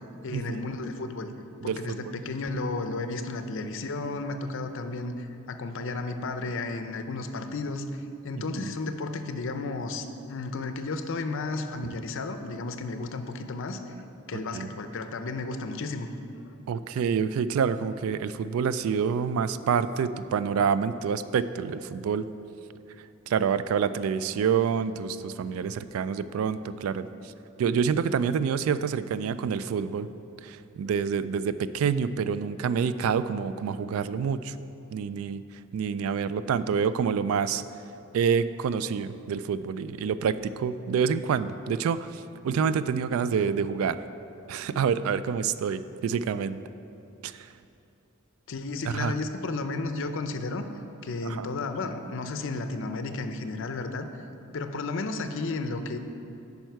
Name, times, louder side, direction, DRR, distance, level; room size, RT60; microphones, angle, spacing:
voice 1, 0.2-1.3 1.6-7.9 8.2-13.9 14.3-16.1 48.5-50.7 51.0-54.2 54.5-56.0, left 3 dB, 65° left, 8 dB, 0.5 m, -33 dB
voice 2, 1.6-2.2 8.3-8.7 11.8-11.9 14.3-14.7 16.7-22.3 23.3-27.3 27.6-30.1 30.4-34.6 34.9-35.4 35.7-37.6 38.1-44.0 44.5-46.6 47.2-47.5 48.9-49.1 51.2-51.5, right 6 dB, 75° right, 14 dB, 0.3 m, -27 dB
9.0 x 5.5 x 4.6 m, 2.8 s
head